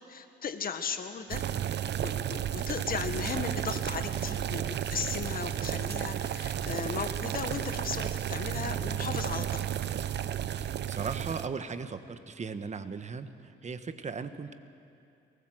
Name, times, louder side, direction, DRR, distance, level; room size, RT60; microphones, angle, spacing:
voice 1, 0.0-1.4 2.0-9.6, left 6 dB, 45° left, 8 dB, 1.7 m, -36 dB
sound 1, 1.3-11.5, right 10 dB, 60° right, 0.8 m, -33 dB
voice 2, 10.5-14.5, right 5 dB, 35° right, 10 dB, 1.3 m, -38 dB
23.0 x 19.5 x 7.8 m, 2.5 s
cardioid pair, 90°, 20 cm